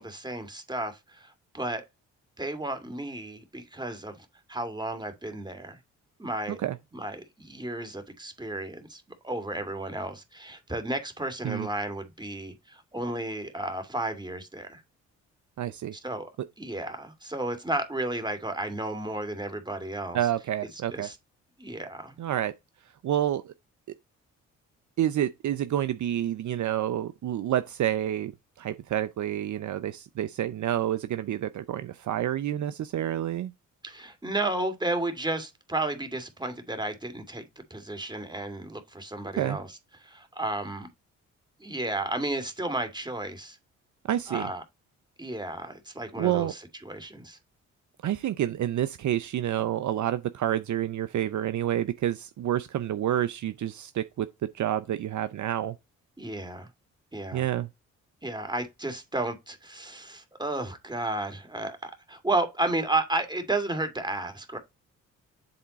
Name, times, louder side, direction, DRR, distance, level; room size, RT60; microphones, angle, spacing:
voice 1, 0.0-1.8 2.4-5.8 6.2-6.6 6.9-14.8 16.0-16.3 16.6-20.2 20.9-21.2 21.6-22.1 33.8-37.4 37.7-40.9 41.6-43.6 44.3-44.6 45.2-47.4 56.2-56.7 57.1-57.5 58.2-64.6, right 2 dB, 10° right, 2.4 m, -33 dB
voice 2, 15.6-15.9 20.1-21.1 22.2-22.5 23.0-23.5 25.0-28.3 28.6-33.5 39.4-39.6 44.1-44.5 46.2-46.5 48.0-55.7 57.3-57.7, right 11 dB, 55° right, 0.7 m, -28 dB
8.0 x 3.5 x 4.1 m
supercardioid pair, 55°, 34 cm